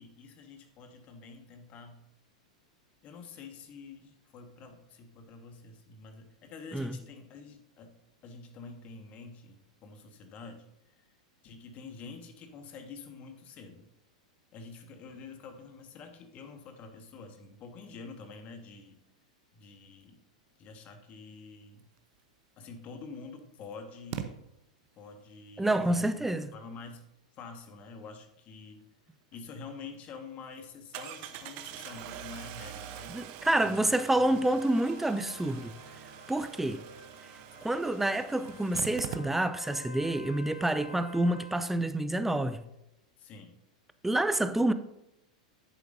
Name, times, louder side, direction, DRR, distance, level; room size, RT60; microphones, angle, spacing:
voice 1, 0.0-2.0 3.0-7.9 8.2-11.0 11.4-13.9 14.5-19.0 19.5-20.2 20.6-21.9 22.6-24.4 25.0-27.0 27.3-28.8 29.3-33.3 33.6-34.3 43.2-43.6, left 4 dB, 40° left, 1.5 m, -47 dB
Engine starting, 22.6-22.7 24.1-24.3 29.3-29.4 29.8-29.9 30.9-39.7 40.0-40.1 40.3-40.4, right 10 dB, 50° right, 0.9 m, -44 dB
voice 2, 25.6-26.5 33.1-35.8 36.3-36.8 37.6-42.6 44.0-44.7, right 1 dB, 5° right, 0.5 m, -28 dB
Trumpet, 34.0-41.8, left 2 dB, 85° left, 1.4 m, -50 dB
10.5 x 8.3 x 2.7 m
hypercardioid pair, 100°, 4 cm